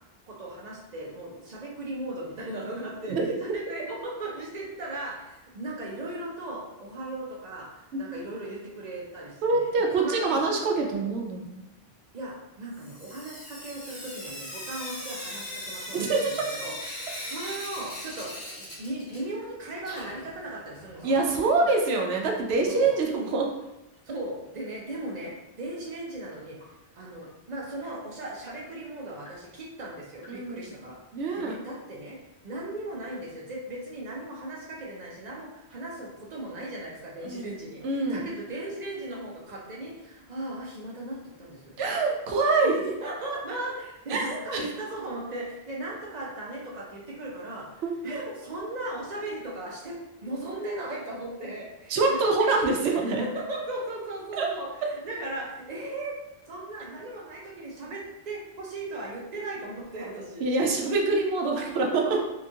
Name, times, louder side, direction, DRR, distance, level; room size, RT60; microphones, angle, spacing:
voice 1, 0.3-7.7 8.0-10.4 12.1-21.5 22.6-22.9 24.1-26.6 27.0-31.0 31.3-32.2 32.4-41.7 42.6-52.5 52.9-53.0 53.3-56.2 56.5-60.5 61.5-61.6 62.0-62.2, right 1 dB, 50° right, -3 dB, 0.7 m, -37 dB
voice 2, 9.4-11.7 15.9-16.2 21.0-23.5 30.3-30.7 31.1-31.6 37.2-37.5 37.8-38.3 41.8-42.8 44.1-44.6 47.8-47.9 51.9-53.2 54.4-54.5 60.4-62.0, right 3 dB, 85° right, 1 dB, 0.8 m, -25 dB
Sink (filling or washing) / Drip, 12.7-19.5 19.7-21.7 22.9-23.0 23.3-23.4 23.6-23.7 26.6-26.7 27.2-27.3 27.8-27.9 28.5-28.6 29.3-29.4 30.2-30.3, left 1 dB, 45° left, 1.2 m, -40 dB
2.8 x 2.4 x 2.6 m, 0.95 s
omnidirectional pair, 1.0 m